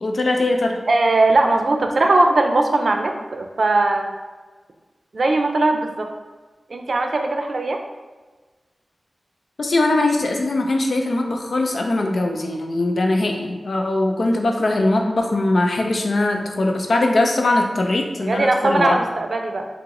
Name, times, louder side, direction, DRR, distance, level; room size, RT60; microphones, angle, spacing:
voice 1, 0.0-0.8 9.6-19.0, left 2 dB, 70° left, 2 dB, 0.5 m, -21 dB
voice 2, 0.9-4.1 5.1-6.1 6.7-7.8 18.2-19.7, right 2 dB, 65° right, 4 dB, 0.4 m, -19 dB
4.5 x 2.0 x 3.7 m, 1.3 s
cardioid pair, 50°, 0 cm